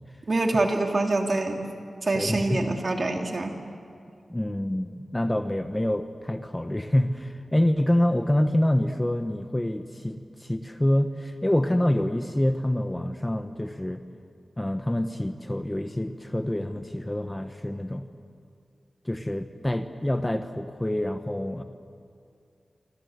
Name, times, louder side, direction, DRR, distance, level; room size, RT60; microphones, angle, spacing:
voice 1, 0.3-1.6 2.0-3.5, right 2 dB, 45° right, 3 dB, 2.9 m, -25 dB
voice 2, 2.1-2.8 4.3-14.0 14.6-18.1 19.0-21.6, left 1 dB, 10° left, 8 dB, 1.0 m, -26 dB
26.5 x 26.5 x 8.1 m, 2.3 s
wide cardioid pair, 125°, 0 cm